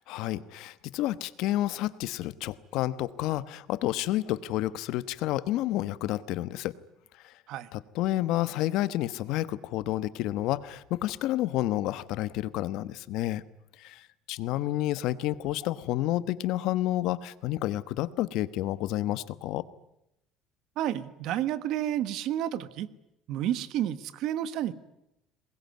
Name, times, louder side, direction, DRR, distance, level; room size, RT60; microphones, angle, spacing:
voice 1, 0.1-6.7 7.2-7.3 7.7-13.4 13.8-19.6, left 15 dB, 70° left, 16 dB, 1.1 m, -30 dB
voice 2, 20.8-22.9 23.3-24.7, right 11 dB, 60° right, 15 dB, 1.4 m, -30 dB
23.0 x 21.0 x 9.5 m, 0.84 s
cardioid pair, 155°, 0 cm